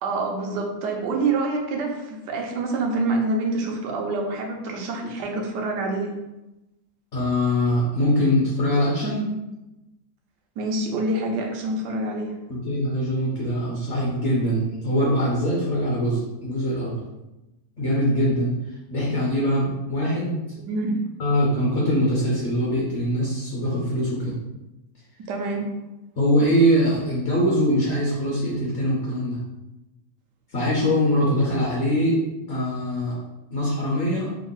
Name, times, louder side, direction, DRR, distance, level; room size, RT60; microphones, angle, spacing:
voice 1, 0.0-6.1 10.6-12.3 20.7-21.0 25.3-25.8, right 2 dB, 90° right, 1 dB, 1.3 m, -26 dB
voice 2, 7.1-9.3 12.5-17.0 17.8-18.5 18.9-20.4 21.2-24.4 26.2-29.4 30.5-32.2 32.5-33.1 33.5-34.3, equal, 55° left, -4 dB, 0.8 m, -22 dB
3.6 x 2.0 x 3.8 m, 1.0 s
omnidirectional pair, 1.8 m